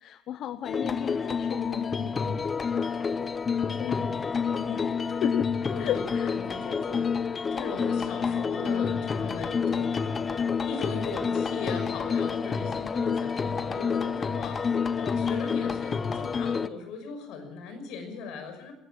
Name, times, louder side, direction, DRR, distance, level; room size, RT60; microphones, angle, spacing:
voice 1, 0.0-2.4 2.7-3.0 3.8-4.1 4.5-6.4, left 11 dB, 60° left, 11 dB, 0.9 m, -35 dB
sound 1, 0.6-16.7, left 6 dB, 30° left, 0.7 m, -28 dB
voice 2, 5.7-10.3 10.6-18.7, left 5 dB, 85° left, 7 dB, 6.0 m, -39 dB
20.0 x 17.5 x 7.7 m, 0.84 s
cardioid pair, 145°, 0 cm